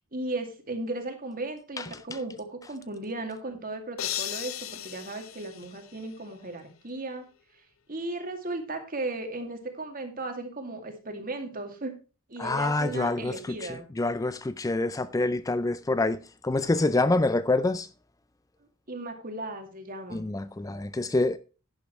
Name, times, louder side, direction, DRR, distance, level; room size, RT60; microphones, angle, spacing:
voice 1, 0.1-7.2 7.9-11.9 12.3-13.9 18.9-20.2, right 2 dB, 45° right, 2.4 m, -36 dB
sound 1, 4.0-6.3, left 12 dB, 75° left, 0.8 m, -36 dB
voice 2, 12.4-13.3 14.0-16.2 16.4-17.9 20.1-21.4, left 2 dB, 15° left, 0.4 m, -26 dB
11.0 x 10.5 x 3.1 m
head